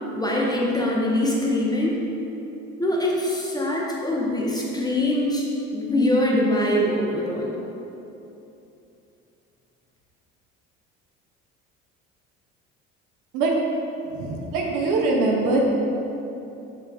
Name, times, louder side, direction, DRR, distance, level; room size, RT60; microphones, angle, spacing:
voice 1, 0.1-1.9 2.8-5.4 5.7-7.5, left 1 dB, 10° left, -4 dB, 0.6 m, -23 dB
voice 2, 14.1-15.6, right 3 dB, 55° right, -1 dB, 0.7 m, -22 dB
5.2 x 3.4 x 2.2 m, 2.9 s
figure-of-eight pair, 55°, 37 cm